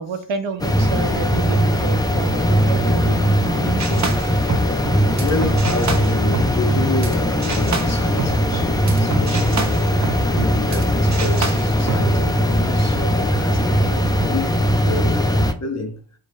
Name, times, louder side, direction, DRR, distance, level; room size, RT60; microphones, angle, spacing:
voice 1, 0.0-4.2, right 5 dB, 80° right, 0.8 m, -29 dB
sound 1, 0.6-15.5, equal, 10° left, 0.5 m, -19 dB
sound 2, 3.8-7.1 7.4-10.8 11.1-12.1, right 4 dB, 40° right, 0.8 m, -28 dB
voice 2, 5.2-16.0, left 2 dB, 35° left, 1.0 m, -29 dB
4.8 x 3.8 x 2.3 m
wide cardioid pair, 85°, 45 cm